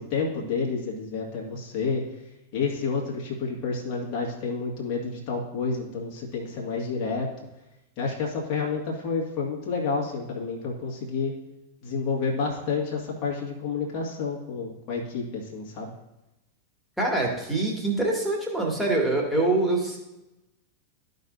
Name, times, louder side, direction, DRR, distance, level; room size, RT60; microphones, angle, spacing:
voice 1, 0.0-2.0 2.5-7.3 8.0-11.3 11.8-15.9, left 4 dB, 40° left, -2 dB, 2.0 m, -29 dB
voice 2, 17.0-20.0, right 2 dB, ahead, -2 dB, 2.4 m, -24 dB
14.5 x 5.3 x 2.7 m, 0.96 s
figure-of-eight pair, 90°, 0 cm